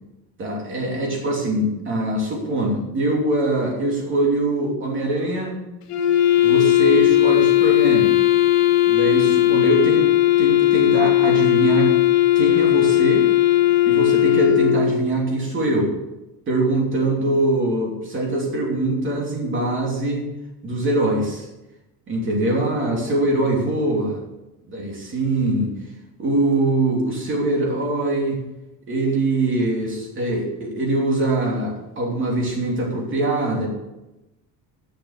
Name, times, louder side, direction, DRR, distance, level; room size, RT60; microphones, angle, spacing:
voice 1, 0.4-5.6 6.4-8.2 8.9-10.1 10.4-11.9 12.3-13.3 13.9-15.9 16.5-20.2 20.6-21.5 22.1-24.2 24.7-25.7 26.2-28.4 28.9-33.7, right 2 dB, 35° right, -1 dB, 2.9 m, -22 dB
Wind instrument woodwind instrument, 5.9-15.1, left 14 dB, 85° left, 1.7 m, -17 dB
10.5 x 6.4 x 6.5 m, 0.97 s
cardioid pair, 160°, 35 cm